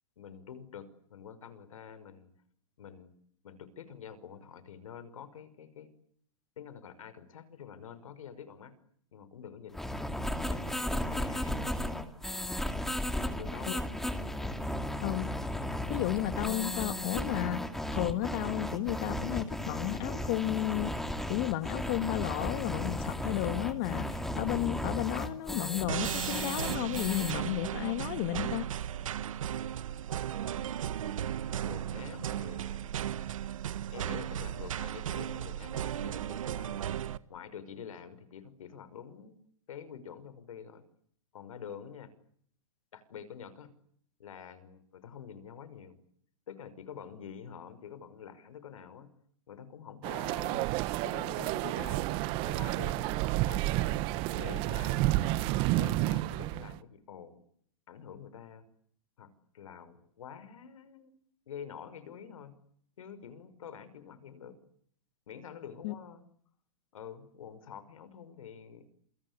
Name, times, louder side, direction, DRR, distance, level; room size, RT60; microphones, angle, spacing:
voice 1, 0.2-2.3 2.8-3.1 3.4-5.9 6.6-8.7 9.1-9.9 10.5-11.6 12.9-13.9 30.2-30.3 31.6-33.0 33.9-36.8 37.3-39.4 39.7-40.8 41.3-42.1 42.9-43.7 44.2-46.0 46.5-49.1 49.5-50.7 51.0-53.8 54.3-55.1 55.7-57.4 57.9-58.7 59.2-61.1 61.5-62.5 63.0-64.6 65.3-66.2 66.9-68.9, left 8 dB, 80° left, 5.6 m, -47 dB
sound 1, 9.7-27.3, left 1 dB, ahead, 2.4 m, -35 dB
voice 2, 15.0-15.3 15.9-17.7 17.9-20.9 21.3-28.7 65.8-65.9, left 16 dB, 40° left, 1.7 m, -33 dB
sound 2, 25.9-37.2, right 10 dB, 80° right, 1.6 m, -35 dB
sound 3, 50.0-56.8, right 17 dB, 30° right, 1.1 m, -30 dB
28.0 x 25.0 x 8.3 m
hypercardioid pair, 155°, 17 cm